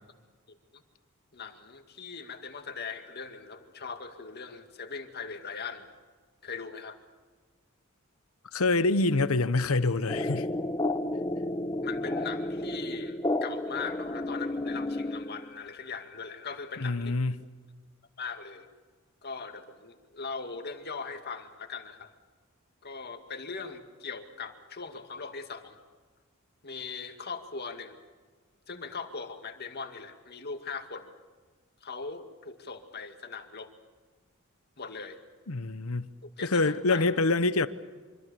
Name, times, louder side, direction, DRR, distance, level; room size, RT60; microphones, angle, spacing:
voice 1, 0.5-0.8 1.3-5.9 6.4-7.0 11.8-17.2 18.2-18.7 19.2-22.1 22.8-25.8 26.6-28.0 28.7-31.1 31.8-33.7 34.8-35.2 36.4-37.1, left 5 dB, 50° left, 2.2 m, -40 dB
voice 2, 8.5-10.5 16.8-17.5 35.5-36.1 36.4-37.7, left 3 dB, 85° left, 1.1 m, -26 dB
sound 1, 10.1-15.6, left 1 dB, 20° left, 0.9 m, -32 dB
25.5 x 25.0 x 6.9 m
head